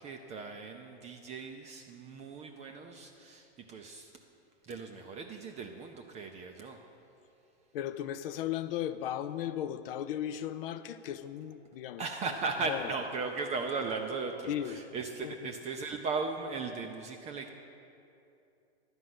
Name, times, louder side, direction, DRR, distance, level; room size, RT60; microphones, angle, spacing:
voice 1, 0.0-4.1 4.6-6.8 12.0-17.6, right 4 dB, 20° right, 4 dB, 0.5 m, -37 dB
voice 2, 7.7-12.1 12.6-12.9 14.5-14.8 15.2-15.5, left 11 dB, 60° left, 12 dB, 0.5 m, -36 dB
11.0 x 5.2 x 7.7 m, 2.7 s
hypercardioid pair, 125°, 33 cm